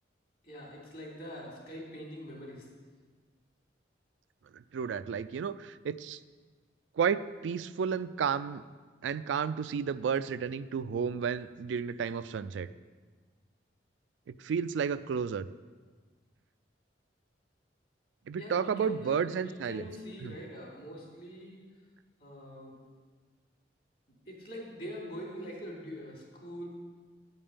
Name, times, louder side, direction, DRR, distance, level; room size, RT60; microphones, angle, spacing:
voice 1, 0.4-2.6 18.4-21.6 22.2-22.8 24.3-26.7, equal, 55° left, -3 dB, 2.9 m, -43 dB
voice 2, 4.5-6.2 7.0-8.6 9.0-12.7 14.3-15.5 18.3-19.9 20.2-20.3, right 6 dB, 85° right, 14 dB, 0.3 m, -32 dB
9.5 x 5.4 x 6.9 m, 1.4 s
head